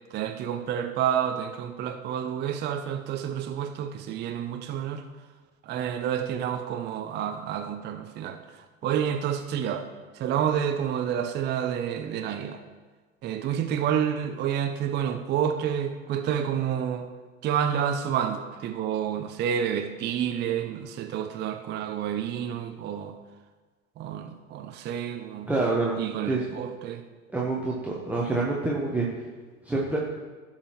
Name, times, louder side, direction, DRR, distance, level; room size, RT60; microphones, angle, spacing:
voice 1, 0.1-5.0 5.6-9.8 10.1-12.6 13.2-17.1 17.4-23.2 24.0-25.5 26.0-27.0, right 9 dB, 25° right, 6 dB, 0.6 m, -29 dB
voice 2, 25.5-26.0 26.3-26.5 27.3-29.1 29.6-30.0, right 3 dB, 5° right, -4 dB, 1.1 m, -26 dB
16.5 x 5.7 x 3.1 m, 1.3 s
figure-of-eight pair, 80°, 42 cm